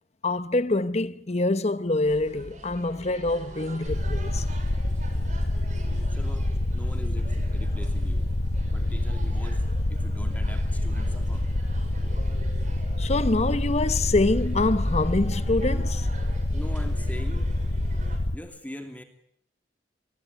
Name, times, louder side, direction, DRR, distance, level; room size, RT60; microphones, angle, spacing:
voice 1, 0.2-4.6 13.0-16.1, left 2 dB, 40° left, 0.9 m, -25 dB
sound 1, 2.0-18.2, right 1 dB, 45° right, 6.2 m, -43 dB
sound 2, 3.9-18.4, left 1 dB, 65° left, 1.1 m, -27 dB
voice 2, 6.1-6.5 6.7-8.3 8.7-11.5 16.5-17.5 18.3-19.0, equal, 10° left, 2.7 m, -42 dB
24.5 x 21.0 x 9.3 m
head